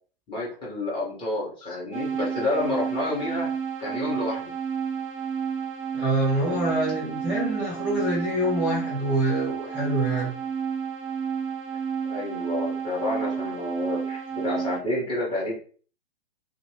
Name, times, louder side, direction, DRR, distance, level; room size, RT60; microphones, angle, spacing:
voice 1, 0.3-3.5 3.8-4.5 12.1-15.6, left 2 dB, 15° left, -6 dB, 1.2 m, -29 dB
sound 1, 1.9-14.8, right 7 dB, 20° right, 0.6 m, -31 dB
voice 2, 5.9-10.3, right 1 dB, 5° right, -6 dB, 1.0 m, -26 dB
2.6 x 2.5 x 3.2 m, 0.42 s
figure-of-eight pair, 115°, 32 cm